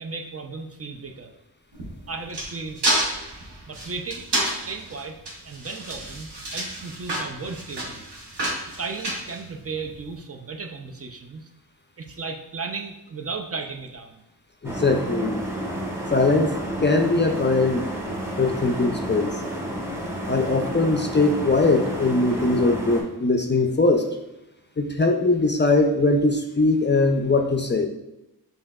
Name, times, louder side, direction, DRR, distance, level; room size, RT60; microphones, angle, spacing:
voice 1, 0.0-1.3 2.1-3.0 3.7-4.3 4.6-5.2 5.4-8.1 8.7-11.5 12.0-14.2, right 4 dB, 40° right, 4 dB, 0.4 m, -35 dB
sound 1, 1.7-10.0, right 1 dB, 85° right, 0.9 m, -29 dB
voice 2, 14.6-15.4 16.1-17.9 18.4-19.4 20.3-24.1 24.8-27.9, left 3 dB, 30° left, 4 dB, 0.4 m, -21 dB
sound 2, 14.6-23.0, right 1 dB, 5° right, 0.9 m, -31 dB
5.7 x 2.7 x 2.3 m, 0.93 s
wide cardioid pair, 55°, 39 cm